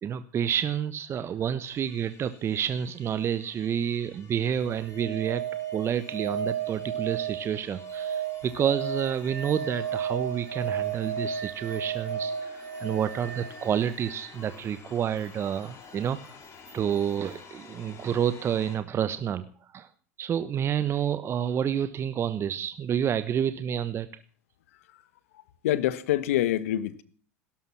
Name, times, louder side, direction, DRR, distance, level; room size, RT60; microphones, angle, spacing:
voice 1, 0.0-5.4 5.7-16.4 16.7-19.9 20.2-24.1, right 9 dB, 35° right, 13 dB, 1.2 m, -29 dB
sound 1, 1.6-18.8, left 5 dB, 35° left, 5.3 m, -51 dB
sound 2, 4.5-14.3 16.7-16.8, right 7 dB, 85° right, 2.6 m, -34 dB
voice 2, 25.6-27.0, left 13 dB, 70° left, 16 dB, 1.6 m, -26 dB
17.0 x 13.5 x 6.0 m, 0.41 s
hypercardioid pair, 85°, 8 cm